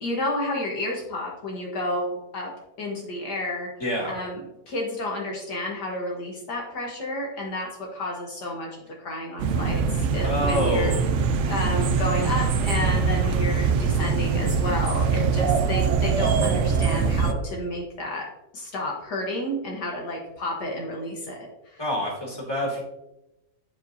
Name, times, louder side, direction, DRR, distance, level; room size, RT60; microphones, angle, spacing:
voice 1, 0.0-2.5 2.8-3.7 4.1-8.7 9.0-10.9 11.5-18.2 18.5-21.4 21.7-21.8, left 1 dB, 70° left, -1 dB, 1.8 m, -30 dB
voice 2, 3.8-4.1 10.2-11.1 21.8-22.8, equal, 15° left, -4 dB, 2.3 m, -27 dB
sound 1, 9.4-17.3, right 5 dB, 80° right, 0.6 m, -23 dB
9.7 x 4.9 x 2.7 m, 0.91 s
omnidirectional pair, 1.9 m